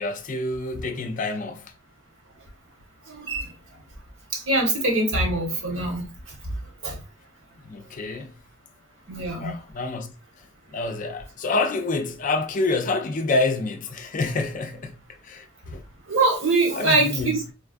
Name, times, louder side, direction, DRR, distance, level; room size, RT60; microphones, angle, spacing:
voice 1, 0.0-1.7 7.6-8.3 9.4-10.1 10.7-15.8 16.7-17.4, left 3 dB, 40° left, 0.4 m, -27 dB
voice 2, 3.0-3.6 4.3-7.0 9.1-9.6 15.6-15.8 16.0-17.4, right 2 dB, 75° right, 1.2 m, -24 dB
4.0 x 2.3 x 2.4 m
head